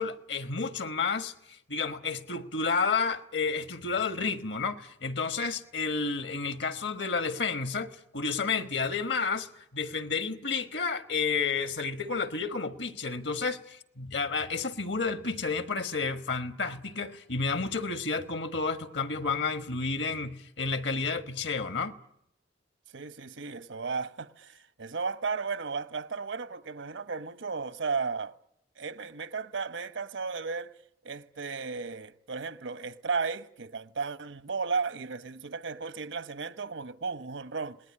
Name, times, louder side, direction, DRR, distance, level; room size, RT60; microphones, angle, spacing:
voice 1, 0.0-21.9, left 4 dB, 70° left, 1.3 m, -31 dB
voice 2, 22.9-28.4 28.8-30.7 31.0-37.8, right 4 dB, 85° right, 1.1 m, -34 dB
27.5 x 19.5 x 10.0 m
head